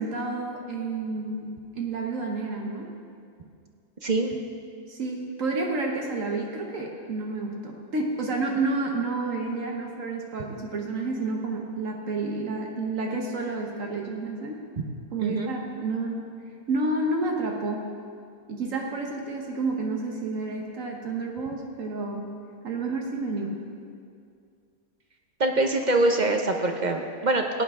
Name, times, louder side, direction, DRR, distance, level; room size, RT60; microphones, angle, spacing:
voice 1, 0.0-2.9 4.9-14.6 15.1-16.2 16.7-17.9 18.5-22.3 22.6-23.6, right 3 dB, 70° right, 0 dB, 1.4 m, -30 dB
voice 2, 4.0-4.4 14.8-14.9 15.2-15.5 25.4-27.6, right 2 dB, 40° right, 4 dB, 0.7 m, -24 dB
16.5 x 9.7 x 3.6 m, 2.3 s
omnidirectional pair, 1.4 m